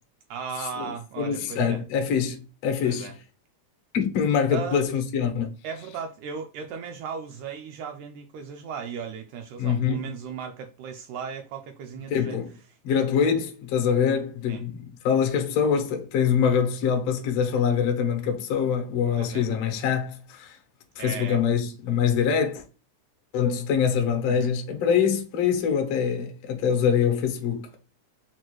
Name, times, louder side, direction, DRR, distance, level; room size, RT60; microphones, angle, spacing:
voice 1, 0.3-1.8 2.9-3.1 4.5-4.9 5.6-12.4 12.9-13.1 14.5-14.6 19.2-19.5 21.0-21.4 24.2-24.5, right 6 dB, 80° right, 1.8 m, -36 dB
voice 2, 1.2-3.1 3.9-5.5 9.6-10.0 12.1-12.5 12.8-20.6 21.0-22.6 23.3-27.8, left 7 dB, 65° left, 1.6 m, -24 dB
5.9 x 2.4 x 3.0 m
omnidirectional pair, 3.8 m